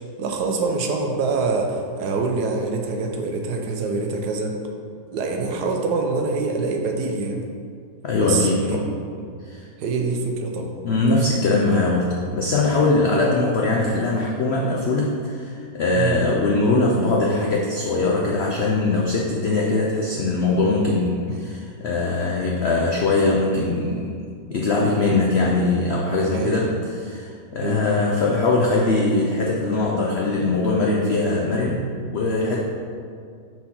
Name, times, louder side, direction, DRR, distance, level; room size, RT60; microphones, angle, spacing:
voice 1, 0.2-4.6 5.1-7.4 8.2-8.8 9.8-10.7 15.9-16.3 21.3-21.5 26.3-26.6 27.6-28.0, right 3 dB, 75° right, 2 dB, 1.2 m, -25 dB
voice 2, 8.0-8.9 9.4-9.6 10.8-15.5 15.7-24.1 24.5-26.7 27.0-31.8 32.1-32.6, left 2 dB, 75° left, -2 dB, 0.6 m, -21 dB
4.4 x 4.2 x 5.5 m, 2.2 s
omnidirectional pair, 1.8 m